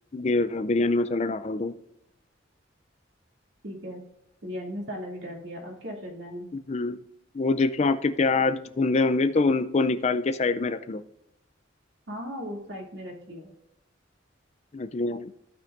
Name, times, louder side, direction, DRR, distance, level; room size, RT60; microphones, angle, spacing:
voice 1, 0.1-1.7 6.7-7.0 7.3-11.0 14.7-15.3, left 3 dB, 35° left, 12 dB, 0.4 m, -25 dB
voice 2, 3.6-4.0 4.4-6.5 12.1-13.5, equal, 65° right, 0 dB, 2.6 m, -37 dB
15.5 x 5.9 x 2.6 m, 0.83 s
head